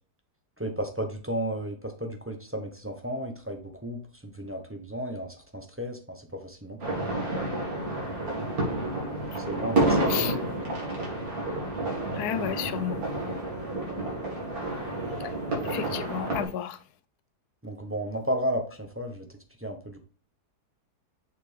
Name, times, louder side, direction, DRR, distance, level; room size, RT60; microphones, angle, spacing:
voice 1, 0.6-7.1 9.5-10.3 17.6-19.3 19.6-20.0, equal, 10° right, 0.7 m, -33 dB
sound 1, 6.8-16.5, right 2 dB, 60° right, 2.6 m, -30 dB
voice 2, 12.1-13.0 15.7-16.8, left 10 dB, 75° left, 1.2 m, -31 dB
6.7 x 4.5 x 3.4 m
omnidirectional pair, 1.7 m